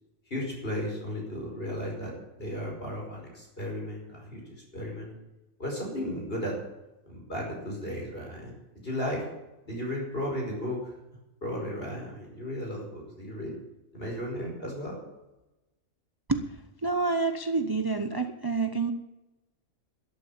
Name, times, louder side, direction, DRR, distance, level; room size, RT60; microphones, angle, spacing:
voice 1, 0.3-5.2 5.6-6.6 7.1-8.5 8.8-9.3 9.7-10.9 11.4-13.5 13.9-15.0, equal, 45° left, -1 dB, 5.6 m, -35 dB
voice 2, 16.3-18.9, right 4 dB, 20° right, 8 dB, 0.7 m, -28 dB
12.5 x 12.0 x 7.5 m, 0.98 s
omnidirectional pair, 1.4 m